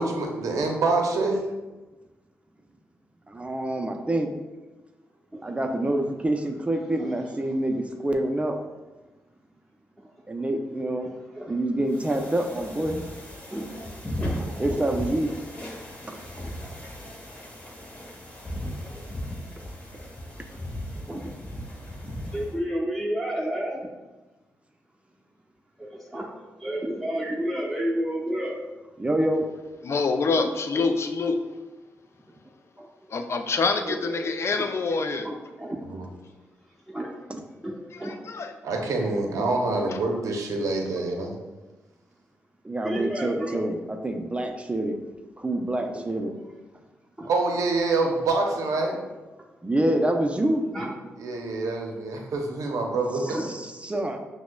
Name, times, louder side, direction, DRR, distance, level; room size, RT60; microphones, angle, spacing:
voice 1, 0.0-1.4 35.8-36.0 38.6-41.3 47.3-49.0 51.2-53.4, right 3 dB, 75° right, 2 dB, 0.6 m, -26 dB
voice 2, 3.3-4.3 5.4-8.6 10.3-11.1 11.5-13.0 14.6-15.3 16.1-16.2 29.0-29.5 42.6-45.0 45.4-46.4 49.6-50.6 53.2-54.2, right 1 dB, 20° right, 4 dB, 0.5 m, -26 dB
sound 1, 11.9-22.6, left 1 dB, 25° left, 1.1 m, -37 dB
voice 3, 14.2-14.6 16.6-16.7 21.1-21.2 22.3-23.9 25.8-26.3 26.6-28.6 32.8-32.9 33.8-34.3 34.6-34.7 35.2-35.8 36.9-37.2 37.6-38.2 42.8-43.6 47.2-47.3 50.7-50.9 53.3-53.4, right 1 dB, ahead, -5 dB, 1.0 m, -31 dB
voice 4, 29.8-31.4 33.1-35.3 37.9-38.5 39.9-40.0, left 4 dB, 50° left, 6 dB, 0.4 m, -26 dB
5.9 x 2.1 x 2.2 m, 1.2 s
supercardioid pair, 50°, 6 cm